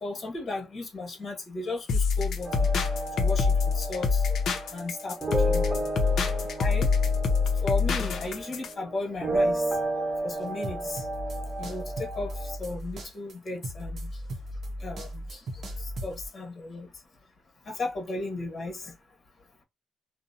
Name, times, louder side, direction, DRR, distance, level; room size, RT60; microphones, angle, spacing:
voice 1, 0.0-2.7 3.2-4.4 4.7-5.2 5.4-5.6 6.6-6.9 7.6-9.8 10.2-11.1 11.6-14.2 14.8-16.9 17.6-18.9, left 2 dB, 45° left, 1.1 m, -35 dB
sound 1, 1.9-8.7, left 5 dB, 65° left, 0.5 m, -25 dB
sound 2, 2.4-12.6, right 1 dB, 20° right, 1.0 m, -32 dB
sound 3, 10.4-16.3, equal, 55° right, 0.6 m, -37 dB
2.6 x 2.0 x 2.7 m
cardioid pair, 90°, 0 cm